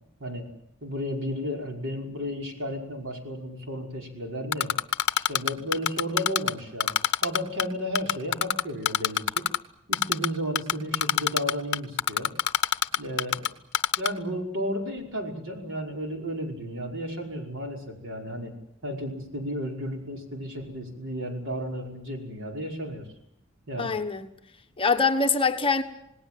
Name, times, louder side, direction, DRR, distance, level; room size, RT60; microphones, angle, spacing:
voice 1, 0.8-4.7 5.3-6.9 7.2-9.5 9.9-12.3 13.0-13.5 14.0-18.5 18.8-23.1 23.7-23.9, equal, 65° right, 5.2 m, -33 dB
Typing, 4.5-6.5 6.8-7.6 8.0-9.6 9.9-10.3 10.6-13.5 13.7-14.1, left 9 dB, 55° left, 0.8 m, -23 dB
voice 2, 23.8-24.3 24.8-25.8, left 4 dB, 25° left, 1.3 m, -24 dB
27.5 x 19.0 x 7.6 m
head